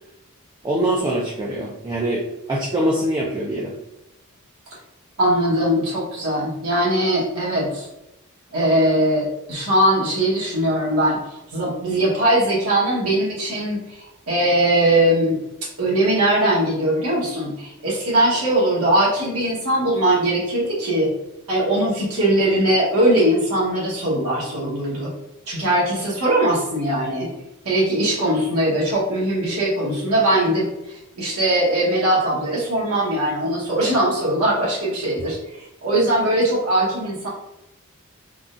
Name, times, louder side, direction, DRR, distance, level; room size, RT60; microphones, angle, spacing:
voice 1, 0.6-3.8, right 1 dB, 20° right, -2 dB, 0.3 m, -23 dB
voice 2, 5.2-7.9 8.5-11.2 11.5-15.4 15.8-21.1 21.5-25.1 25.5-27.3 27.6-30.7 31.2-37.3, right 1 dB, 80° right, -6 dB, 1.2 m, -20 dB
3.6 x 2.2 x 2.5 m, 0.90 s
head